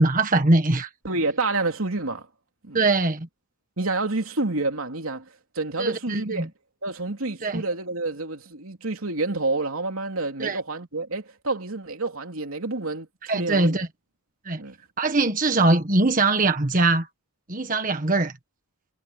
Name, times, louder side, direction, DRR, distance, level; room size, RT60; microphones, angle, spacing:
voice 1, 0.0-0.9 2.7-3.3 5.8-6.5 7.4-7.6 10.4-10.6 13.3-13.9 14.4-14.6 15.0-17.1 17.5-18.3, right 2 dB, 40° right, 1.5 m, -21 dB
voice 2, 1.0-2.3 2.6-2.9 3.8-6.5 6.8-13.8 14.6-14.7, right 2 dB, 90° right, 3.1 m, -28 dB
head